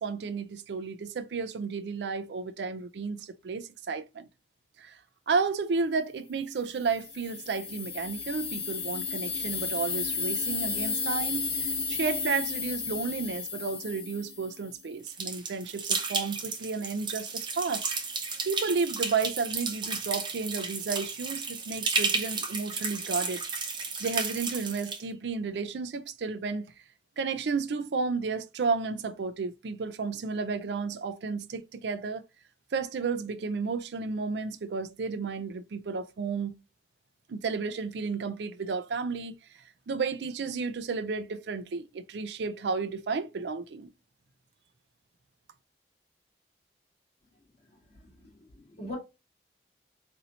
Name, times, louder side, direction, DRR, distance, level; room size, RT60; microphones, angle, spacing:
voice 1, 0.0-4.3 4.8-4.9 5.3-11.5 11.9-17.9 18.4-23.4 24.0-26.7 27.2-32.2 32.7-36.5 37.3-39.4 39.9-43.9, right 4 dB, 80° right, 0.4 m, -32 dB
sound 1, 6.8-14.7, left 5 dB, 60° left, 1.0 m, -33 dB
sound 2, 15.1-25.0, right 4 dB, 25° right, 0.6 m, -33 dB
voice 2, 47.9-49.0, left 2 dB, 40° left, 1.8 m, -43 dB
4.2 x 2.7 x 2.7 m
head